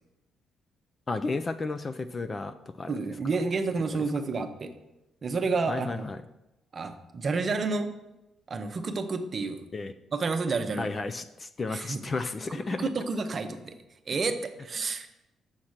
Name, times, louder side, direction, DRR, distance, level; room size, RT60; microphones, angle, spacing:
voice 1, 1.1-3.0 5.7-6.2 9.7-9.9 10.8-12.9, left 3 dB, 25° left, 9 dB, 0.3 m, -33 dB
voice 2, 2.9-4.7 5.2-6.0 6.7-7.9 8.5-9.6 10.1-10.9 11.7-12.0 12.5-13.7 14.1-15.1, right 4 dB, 30° right, 7 dB, 0.7 m, -30 dB
7.2 x 5.8 x 6.5 m, 0.94 s
cardioid pair, 175°, 0 cm